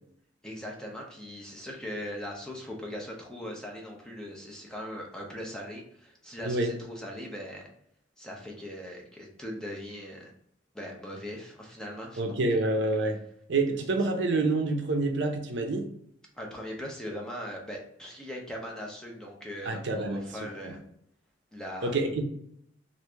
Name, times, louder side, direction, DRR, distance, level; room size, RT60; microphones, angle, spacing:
voice 1, 0.4-7.7 8.2-10.3 10.7-12.4 16.4-20.8 21.5-22.0, equal, 5° left, -1 dB, 0.6 m, -40 dB
voice 2, 12.2-13.2 13.5-15.9 19.7-20.2 20.6-20.7 21.8-22.2, right 2 dB, 65° right, 5 dB, 0.5 m, -27 dB
3.2 x 2.5 x 3.3 m, 0.71 s
head